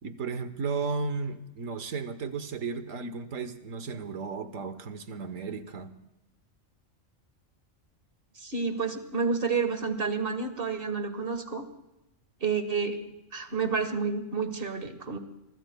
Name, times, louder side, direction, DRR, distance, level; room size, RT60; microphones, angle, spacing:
voice 1, 0.0-6.0, right 4 dB, 75° right, 11 dB, 1.5 m, -34 dB
voice 2, 8.4-11.7 12.4-15.2, right 5 dB, 45° right, 9 dB, 1.7 m, -30 dB
25.0 x 21.5 x 2.3 m, 0.95 s
omnidirectional pair, 1.4 m